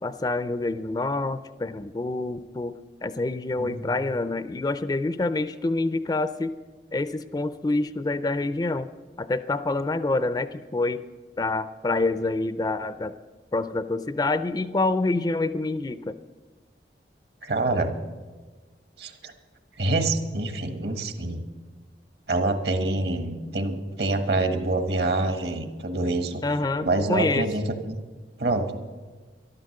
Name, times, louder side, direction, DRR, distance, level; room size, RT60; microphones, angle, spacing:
voice 1, 0.0-2.7 3.0-6.5 6.9-8.9 9.2-11.0 11.4-13.1 13.5-16.2 26.4-27.5, left 2 dB, 20° left, 13 dB, 0.4 m, -27 dB
voice 2, 3.6-3.9 17.4-17.9 19.0-19.3 19.8-21.5 22.3-26.4 26.8-28.0 28.4-28.8, right 2 dB, 65° right, 7 dB, 1.3 m, -26 dB
13.0 x 11.5 x 6.5 m, 1.3 s
head